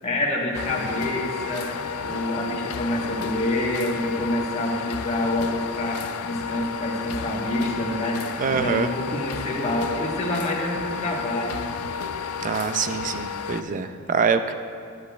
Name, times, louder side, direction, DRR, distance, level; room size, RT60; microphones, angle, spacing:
voice 1, 0.0-11.6, left 1 dB, 30° left, -3 dB, 1.2 m, -27 dB
sound 1, 0.5-13.6, left 6 dB, 85° left, 0.4 m, -32 dB
voice 2, 8.4-8.9 12.4-14.5, right 6 dB, 35° right, 10 dB, 0.3 m, -25 dB
10.0 x 9.8 x 2.3 m, 2.3 s
head